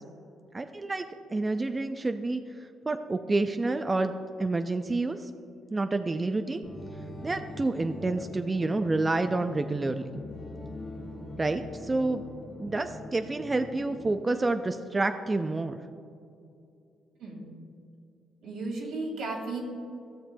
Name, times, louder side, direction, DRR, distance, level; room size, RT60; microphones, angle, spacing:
voice 1, 0.5-1.0 1.3-2.4 2.9-4.1 4.4-5.3 5.7-6.6 7.2-10.1 11.4-12.2 12.6-15.8, right 2 dB, 25° right, 8 dB, 0.4 m, -28 dB
sound 1, 6.6-14.2, left 1 dB, 25° left, 1.9 m, -42 dB
voice 2, 18.4-19.6, right 3 dB, 80° right, -1 dB, 2.1 m, -34 dB
15.5 x 6.7 x 2.2 m, 2.6 s
cardioid pair, 90°, 0 cm